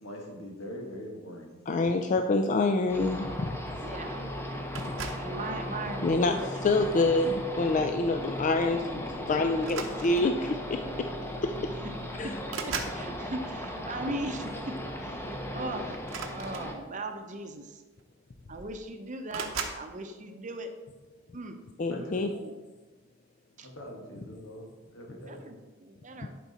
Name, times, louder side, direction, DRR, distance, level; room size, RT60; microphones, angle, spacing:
voice 1, 0.0-1.6 21.9-22.3 23.6-25.5, equal, 85° left, 1 dB, 1.7 m, -42 dB
voice 2, 1.7-3.3 6.0-6.3 6.6-10.8 12.2-12.3 21.8-22.3, left 2 dB, 40° left, 6 dB, 0.4 m, -26 dB
sound 1, 2.9-16.7, equal, 10° left, 0.8 m, -37 dB
voice 3, 3.8-4.6 5.1-6.5 11.8-11.9 12.2-16.0 16.3-17.8 18.5-20.7 21.3-21.6 22.0-22.5 23.6-23.7 25.1-26.3, right 2 dB, 40° right, 6 dB, 0.7 m, -39 dB
sound 2, 4.7-5.4 6.2-6.6 8.1-8.2 8.5-8.7 9.6-10.4 11.5-11.6 11.9-13.0 16.0-17.1 18.0-18.1 18.3-18.8 19.3-19.9, right 5 dB, 70° right, 0.9 m, -38 dB
11.0 x 4.7 x 4.2 m, 1.2 s
head